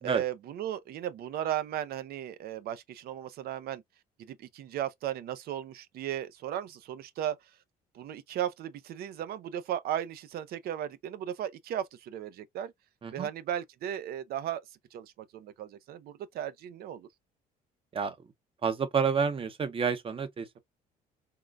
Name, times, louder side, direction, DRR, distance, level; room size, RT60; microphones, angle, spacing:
voice 1, 0.0-3.8 4.2-7.4 7.9-12.7 13.1-14.6 14.9-17.1, right 11 dB, 65° right, 0.6 m, -36 dB
voice 2, 18.6-20.6, right 6 dB, 30° right, 0.8 m, -29 dB
3.7 x 2.2 x 2.4 m
cardioid pair, 110°, 17 cm